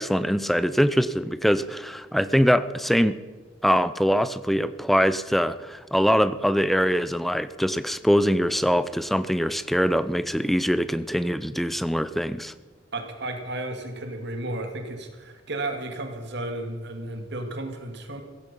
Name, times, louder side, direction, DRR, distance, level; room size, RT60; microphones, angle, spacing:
voice 1, 0.0-3.2 3.6-12.5, equal, ahead, 14 dB, 0.6 m, -23 dB
voice 2, 12.9-18.2, right 2 dB, 65° right, 5 dB, 2.2 m, -33 dB
16.0 x 15.5 x 5.5 m, 1.4 s
head